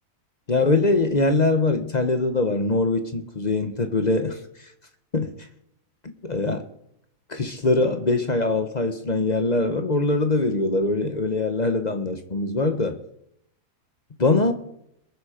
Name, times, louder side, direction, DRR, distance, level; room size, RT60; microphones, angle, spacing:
voice 1, 0.5-4.4 5.1-5.3 6.0-6.6 7.3-13.0 14.2-14.5, left 2 dB, 30° left, 0.9 m, -22 dB
21.5 x 7.5 x 5.0 m
omnidirectional pair, 1.8 m